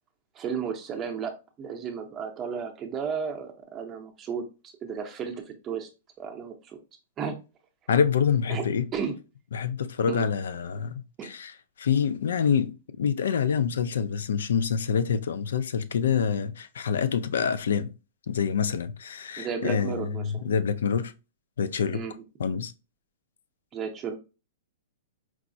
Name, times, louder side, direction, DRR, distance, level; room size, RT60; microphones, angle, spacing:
voice 1, 0.3-5.9 6.2-6.8 7.2-7.4 8.5-8.6 8.9-9.2 10.1-10.3 11.2-11.3 19.4-20.5 21.9-22.2 23.7-24.2, right 6 dB, 25° right, 0.6 m, -34 dB
voice 2, 7.9-8.9 9.5-11.5 11.8-17.9 18.3-21.1 21.6-22.0 22.4-22.7, left 7 dB, 85° left, 0.4 m, -26 dB
4.6 x 2.0 x 2.6 m
hypercardioid pair, 150°, 0 cm